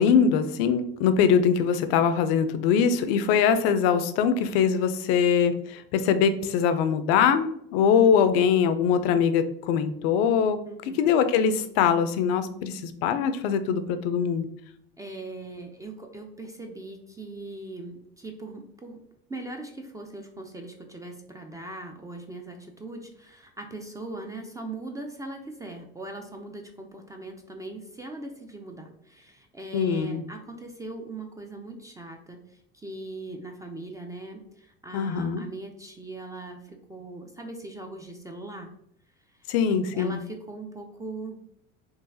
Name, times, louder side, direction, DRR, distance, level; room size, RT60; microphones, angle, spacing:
voice 1, 0.0-10.6 11.0-14.5 29.7-30.2 34.9-35.4 39.5-40.2, left 7 dB, 75° left, 10 dB, 0.5 m, -22 dB
voice 2, 10.6-11.1 15.0-19.0 19.3-32.4 32.7-38.7 39.9-41.5, right 2 dB, 10° right, 3 dB, 0.3 m, -40 dB
3.8 x 2.5 x 2.7 m, 0.72 s
supercardioid pair, 100°, 30 cm